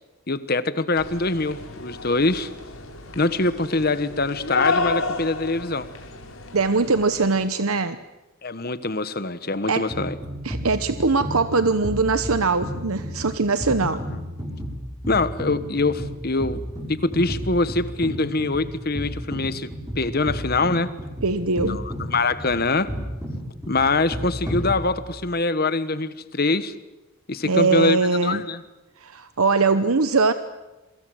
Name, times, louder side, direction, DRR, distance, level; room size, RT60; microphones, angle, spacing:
voice 1, 0.3-2.5 3.1-5.9 8.4-10.2 13.8-13.9 15.1-16.6 16.9-19.7 19.9-20.9 21.6-22.9 23.7-26.7 27.3-28.6, left 3 dB, 45° left, 13 dB, 1.3 m, -24 dB
sound 1, 1.0-7.5, left 3 dB, 75° left, 4.2 m, -31 dB
voice 2, 6.5-8.0 9.7-9.9 10.4-14.0 21.2-21.8 27.4-28.4 29.0-30.3, right 4 dB, 80° right, 11 dB, 1.0 m, -21 dB
sound 2, 9.9-25.3, equal, 15° right, 6.4 m, -33 dB
27.5 x 23.5 x 7.9 m, 1.1 s
head